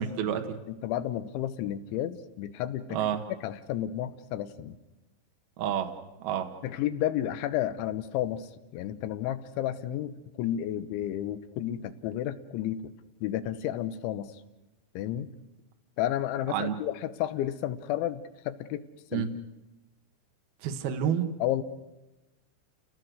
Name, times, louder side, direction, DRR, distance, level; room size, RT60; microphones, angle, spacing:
voice 1, 0.0-0.6 2.9-3.2 5.6-5.9 6.2-6.5 16.5-16.8 19.1-19.3 20.6-21.3, right 9 dB, 65° right, 5 dB, 3.0 m, -29 dB
voice 2, 0.7-3.0 3.4-4.8 6.6-12.9 13.2-14.3 15.0-15.3 16.0-18.9 19.1-19.3 21.4-21.6, left 12 dB, 85° left, 11 dB, 3.4 m, -32 dB
29.0 x 18.5 x 6.4 m, 1.0 s
omnidirectional pair, 5.3 m